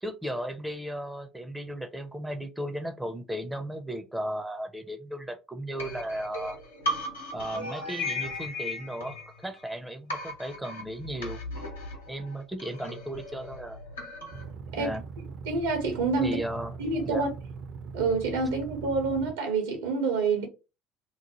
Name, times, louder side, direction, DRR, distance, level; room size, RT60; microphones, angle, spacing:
voice 1, 0.0-6.6 7.3-11.4 12.1-13.8 14.8-15.0 16.2-16.7 17.1-17.2, right 1 dB, 5° right, 0.5 m, -35 dB
sound 1, 5.8-9.7 10.1-14.5, left 1 dB, 90° left, 0.9 m, -36 dB
sound 2, 14.3-19.3, right 5 dB, 55° right, 0.6 m, -41 dB
voice 2, 15.5-16.4 16.8-17.3 17.9-20.5, right 4 dB, 80° right, 1.0 m, -27 dB
2.9 x 2.1 x 2.9 m
hypercardioid pair, 65°, 0 cm